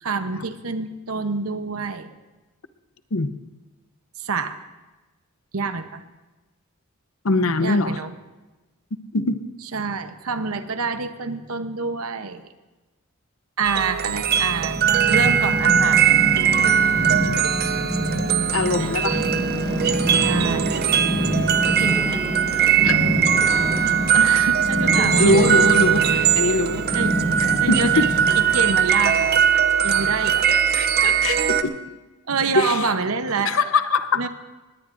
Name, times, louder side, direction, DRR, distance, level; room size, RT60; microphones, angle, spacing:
voice 1, 0.0-2.1 4.2-4.5 5.5-6.0 7.6-8.1 9.7-12.4 13.6-14.8 15.1-16.1 18.8-18.9 20.2-20.8 21.7-22.2 24.1-25.6 26.9-27.2 27.6-28.1 28.5-29.4 29.8-30.4 32.3-33.6 34.2-34.3, right 4 dB, 80° right, 9 dB, 0.9 m, -27 dB
voice 2, 7.2-8.0 9.1-9.4 18.5-19.2 22.8-23.0 25.2-26.8 27.4-28.1 30.5-30.6 31.0-31.8 32.5-32.9 33.4-34.2, left 3 dB, 70° left, 11 dB, 0.7 m, -22 dB
sound 1, 13.6-31.6, right 8 dB, 45° right, 0.6 m, -20 dB
Purr, 14.0-28.8, equal, 5° right, 5.2 m, -27 dB
sound 2, 18.7-23.8, equal, 15° left, 2.7 m, -36 dB
19.5 x 18.0 x 2.6 m, 1.2 s
head